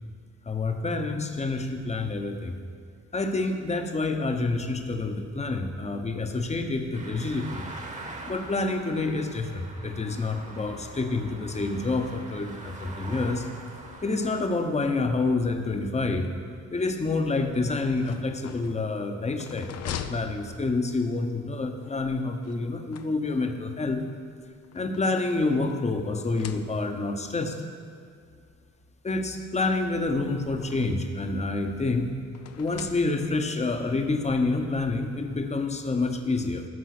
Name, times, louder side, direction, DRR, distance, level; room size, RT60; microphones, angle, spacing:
voice 1, 0.5-2.6 3.1-7.7 8.2-13.5 14.0-16.3 16.7-24.0 24.7-27.6 29.0-32.2 32.6-36.7, left 3 dB, 20° left, 5 dB, 1.0 m, -28 dB
sound 1, 6.9-14.5, right 2 dB, 25° right, 1.3 m, -43 dB
sound 2, 18.0-21.1 22.4-23.6 24.4-25.8 26.2-27.1 28.1-28.2 28.5-28.6 29.8-31.1 32.3-33.5, left 8 dB, 55° left, 0.6 m, -42 dB
14.5 x 5.4 x 6.0 m, 2.3 s
cardioid pair, 90°, 30 cm